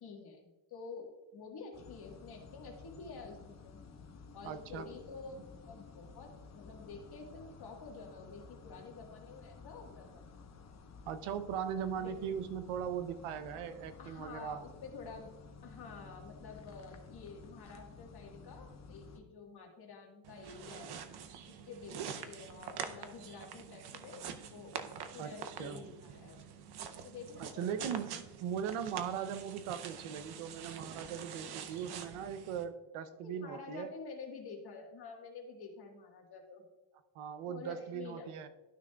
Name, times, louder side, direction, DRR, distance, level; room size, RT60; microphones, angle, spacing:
voice 1, 0.0-3.8 4.3-10.3 12.0-12.3 14.0-15.3 15.6-21.0 21.5-24.7 25.1-26.4 27.0-28.0 33.2-36.6 37.4-38.3, left 4 dB, 50° left, 1 dB, 1.6 m, -49 dB
sound 1, 1.7-19.2, left 4 dB, 35° left, 0.9 m, -54 dB
voice 2, 4.4-4.9 11.1-14.6 25.2-25.8 27.4-33.9 37.1-38.5, right 8 dB, 85° right, 11 dB, 0.8 m, -39 dB
sound 2, 20.2-32.7, right 7 dB, 55° right, 0.7 m, -46 dB
12.5 x 6.0 x 2.3 m, 1.1 s
cardioid pair, 120°, 49 cm